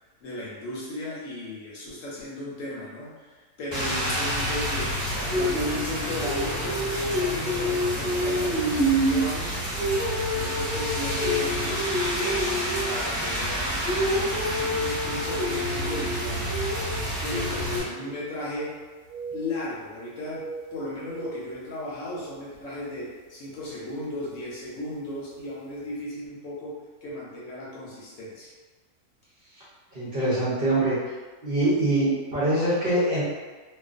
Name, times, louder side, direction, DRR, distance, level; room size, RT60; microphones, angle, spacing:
voice 1, 0.2-9.7 10.3-12.5 12.9-13.8 14.1-16.5 17.2-18.7 19.3-20.4 20.7-28.5, left 1 dB, 70° left, -6 dB, 1.0 m, -35 dB
Rain, 3.7-17.8, equal, 15° right, 0.9 m, -26 dB
sound 1, 17.8-18.8 19.1-20.0 20.2-22.4 22.8-23.0 23.6-23.9 24.9-25.0 25.4-25.5, right 4 dB, 85° right, 1.1 m, -41 dB
voice 2, 29.9-31.0 31.4-33.2, right 1 dB, 50° right, -10 dB, 0.8 m, -23 dB
2.4 x 2.4 x 2.4 m, 1.3 s
omnidirectional pair, 1.5 m